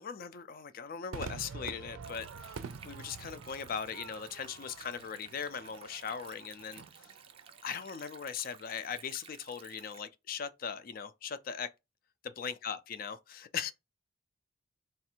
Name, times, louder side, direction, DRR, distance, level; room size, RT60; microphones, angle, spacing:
voice 1, 0.0-7.1 7.6-11.7 12.4-13.7, left 7 dB, 45° left, 0.4 m, -39 dB
Crowd / Fireworks, 1.1-7.7, right 5 dB, 90° right, 0.4 m, -47 dB
Stream, 2.0-10.0, right 7 dB, 30° right, 0.3 m, -55 dB
3.2 x 2.4 x 4.4 m
head